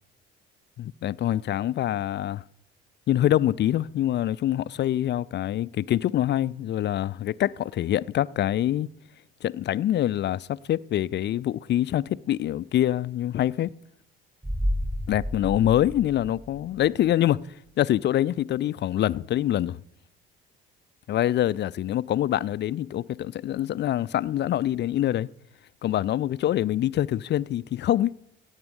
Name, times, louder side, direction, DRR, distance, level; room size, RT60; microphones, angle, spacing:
voice 1, 0.8-2.4 3.1-8.9 9.4-13.7 15.1-17.4 17.8-19.8 21.1-25.3 25.8-28.1, left 12 dB, 35° left, 0.4 m, -25 dB
sound 1, 14.4-17.1 17.4-17.5, equal, 15° right, 2.8 m, -31 dB
16.0 x 8.8 x 5.2 m
hypercardioid pair, 55°, 31 cm